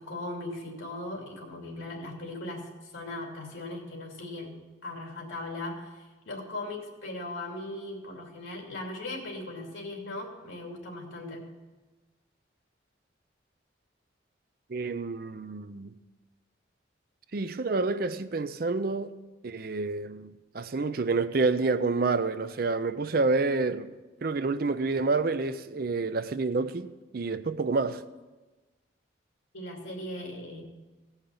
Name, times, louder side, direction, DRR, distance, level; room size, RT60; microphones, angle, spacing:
voice 1, 0.0-11.5 29.5-30.6, left 2 dB, 85° left, 2.7 m, -38 dB
voice 2, 14.7-15.9 17.3-19.1 19.4-23.9 24.2-28.0, right 3 dB, 50° right, 0.5 m, -28 dB
17.0 x 5.7 x 7.0 m
head